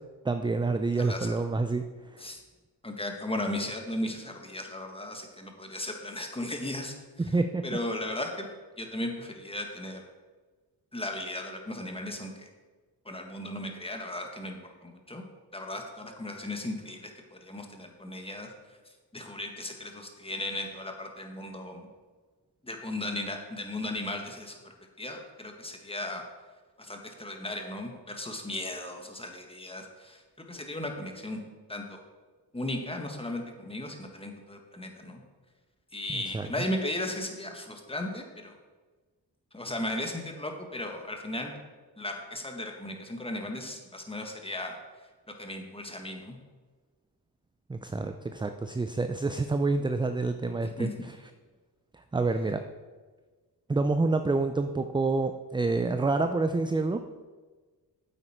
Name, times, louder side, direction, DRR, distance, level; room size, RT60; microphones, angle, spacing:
voice 1, 0.2-1.8 2.1-2.2 7.3-7.6 36.1-36.5 47.7-50.9 52.1-52.6 53.7-57.0, right 3 dB, 10° right, 8 dB, 0.4 m, -27 dB
voice 2, 1.0-1.4 2.2-2.4 2.8-7.3 7.6-8.5 8.8-10.0 10.9-12.5 13.0-15.2 15.5-18.5 19.1-21.9 22.6-26.2 26.8-30.2 30.5-31.4 31.7-32.0 32.5-35.2 35.9-38.5 39.5-41.5 42.0-44.7 45.4-46.4 50.6-50.9, left 1 dB, 15° left, 3 dB, 1.6 m, -36 dB
9.1 x 8.0 x 4.5 m, 1.4 s
cardioid pair, 75°, 43 cm